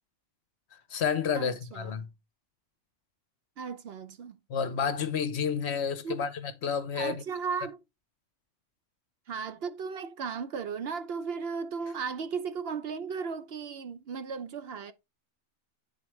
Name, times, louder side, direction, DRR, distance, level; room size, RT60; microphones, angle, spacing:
voice 1, 0.7-2.1 4.5-7.2, left 6 dB, 65° left, 1.0 m, -30 dB
voice 2, 1.3-2.0 3.6-4.4 6.0-6.2 6.9-7.8 9.3-14.9, right 5 dB, 60° right, 0.8 m, -36 dB
8.7 x 4.1 x 3.1 m
omnidirectional pair, 1.2 m